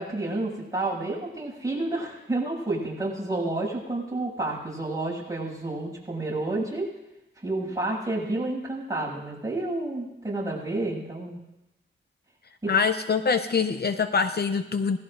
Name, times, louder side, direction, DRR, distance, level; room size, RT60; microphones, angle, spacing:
voice 1, 0.0-6.9 7.4-11.4 12.6-12.7, right 2 dB, 15° right, -4 dB, 7.3 m, -30 dB
voice 2, 12.7-15.0, left 5 dB, 50° left, 9 dB, 0.6 m, -24 dB
27.0 x 19.0 x 2.6 m, 0.94 s
wide cardioid pair, 105°, 21 cm